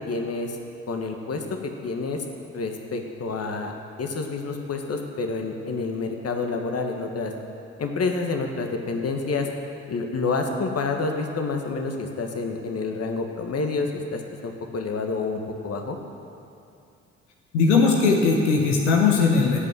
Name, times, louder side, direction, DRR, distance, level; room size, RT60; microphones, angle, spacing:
voice 1, 0.1-0.6 0.9-2.2 2.5-7.3 7.8-9.5 9.9-16.0, left 4 dB, 45° left, 3 dB, 1.6 m, -28 dB
voice 2, 17.5-19.6, left 4 dB, 90° left, 0 dB, 1.1 m, -19 dB
14.5 x 5.5 x 7.7 m, 2.6 s
hypercardioid pair, 50°, 34 cm